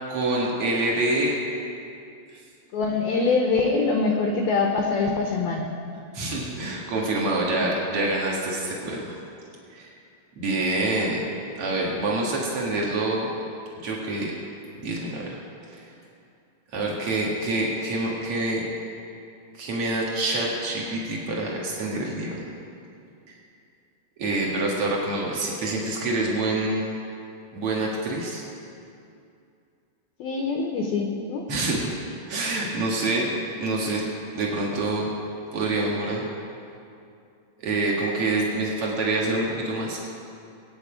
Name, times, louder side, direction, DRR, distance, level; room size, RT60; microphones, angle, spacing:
voice 1, 0.1-1.3 6.1-9.1 9.7-9.9 10.4-11.2 11.6-13.3 13.8-14.3 14.8-15.4 15.7-15.9 16.7-18.6 19.6-22.4 24.2-26.9 27.5-28.4 31.5-31.9 32.3-33.3 33.6-34.0 34.3-35.1 35.5-36.2 37.6-40.1, right 2 dB, 85° right, -3 dB, 1.2 m, -26 dB
voice 2, 2.7-5.7 30.2-31.4, left 4 dB, 90° left, 2 dB, 2.1 m, -24 dB
23.5 x 9.3 x 5.1 m, 2.5 s
omnidirectional pair, 5.7 m